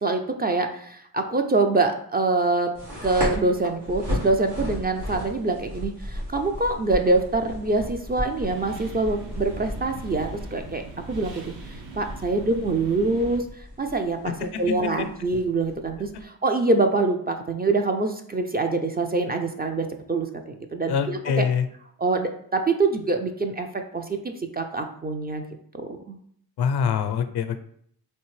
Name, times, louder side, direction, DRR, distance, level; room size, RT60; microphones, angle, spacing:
voice 1, 0.0-2.7 3.0-21.5 22.0-23.7 23.9-24.2 24.5-25.4 25.8-26.2, right 3 dB, 25° right, 5 dB, 0.4 m, -25 dB
sound 1, 2.7-16.2, equal, 85° right, 1.4 m, -35 dB
sound 2, 8.3-13.4, right 3 dB, 60° right, 0.7 m, -41 dB
voice 2, 14.7-15.1 20.9-21.7 26.6-27.6, left 7 dB, 65° left, 10 dB, 0.5 m, -25 dB
3.2 x 2.5 x 3.2 m, 0.65 s
cardioid pair, 50°, 42 cm